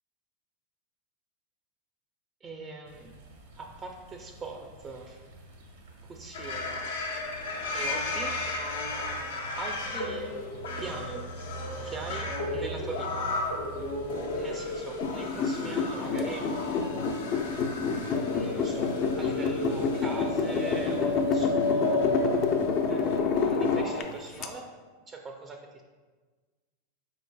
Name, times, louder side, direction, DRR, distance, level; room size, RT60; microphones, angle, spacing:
voice 1, 2.4-3.2 3.6-5.2 6.0-7.0 7.7-8.4 9.5-10.4 10.8-11.3 11.8-13.3 14.3-17.5 18.3-22.2 22.9-24.7 25.1-25.8, right 3 dB, 25° right, 3 dB, 0.4 m, -41 dB
sound 1, 2.8-21.4, right 4 dB, 80° right, 0.8 m, -47 dB
sound 2, 6.3-24.0, left 2 dB, 85° left, 0.6 m, -33 dB
sound 3, 15.0-24.5, left 5 dB, 45° left, 0.4 m, -29 dB
4.5 x 3.9 x 2.2 m, 1.4 s
hypercardioid pair, 115°, 0 cm